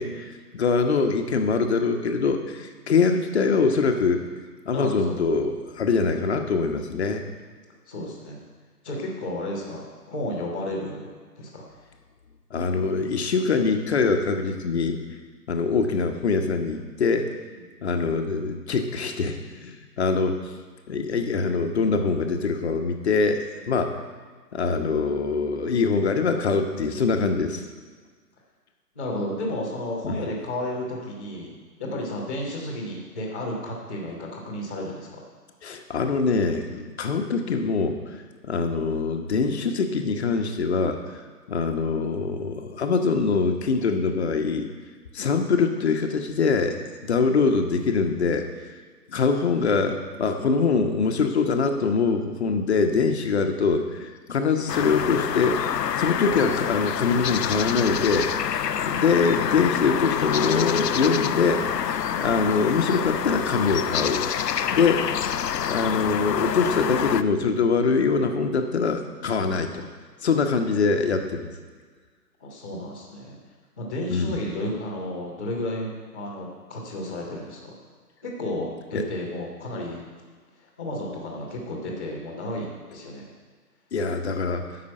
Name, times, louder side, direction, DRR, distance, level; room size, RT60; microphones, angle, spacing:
voice 1, 0.0-4.2 4.7-7.2 12.5-15.0 15.5-17.3 17.8-20.4 20.9-24.0 24.5-27.7 30.0-30.2 35.6-38.0 38.4-41.0 41.5-44.7 45.1-48.5 49.1-55.7 56.0-61.6 61.9-64.3 64.7-65.1 65.6-69.9 70.2-71.5 74.1-74.4 78.9-79.0 83.9-84.6, left 4 dB, 40° left, 5 dB, 1.0 m, -23 dB
voice 2, 4.7-5.4 5.8-5.9 7.9-8.4 8.8-11.7 17.5-17.6 28.9-31.5 31.8-35.2 72.4-73.4 73.8-77.7 78.2-80.0 80.8-83.3, left 1 dB, 5° left, -14 dB, 0.6 m, -32 dB
sound 1, 54.7-67.2, left 9 dB, 80° left, 0.6 m, -27 dB
10.0 x 6.0 x 7.6 m, 1.6 s
figure-of-eight pair, 145°, 49 cm